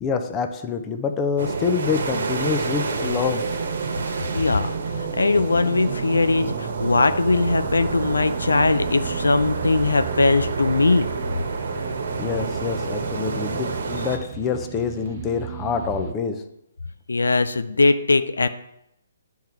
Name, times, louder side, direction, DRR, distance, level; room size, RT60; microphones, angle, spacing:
voice 1, 0.0-3.4 12.2-16.4, left 6 dB, 20° left, 6 dB, 0.7 m, -26 dB
sound 1, 1.4-14.2, right 4 dB, 60° right, 1.2 m, -29 dB
sound 2, 3.4-16.1, right 9 dB, 40° right, 0.7 m, -35 dB
voice 2, 4.3-11.1 17.1-18.5, left 3 dB, 80° left, 10 dB, 0.5 m, -20 dB
10.5 x 3.7 x 4.5 m, 0.81 s
figure-of-eight pair, 135°, 0 cm